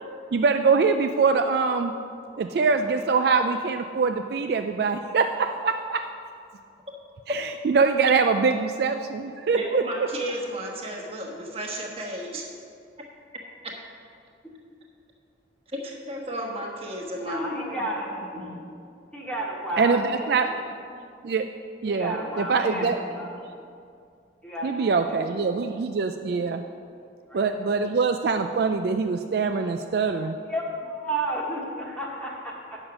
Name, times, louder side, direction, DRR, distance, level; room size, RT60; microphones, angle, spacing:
voice 1, 0.3-1.9 2.4-6.1 7.3-10.1 19.8-20.6 21.2-21.5 21.8-23.0 24.6-26.6 27.3-30.4, right 5 dB, 55° right, 6 dB, 0.3 m, -23 dB
voice 2, 9.5-12.4 15.7-17.4, equal, 30° right, -1 dB, 1.3 m, -33 dB
voice 3, 17.3-18.6 19.1-20.6 21.8-23.3 24.4-25.1 27.2-27.5 30.5-32.8, right 1 dB, 5° left, -3 dB, 1.3 m, -32 dB
9.0 x 6.4 x 6.0 m, 2.4 s
head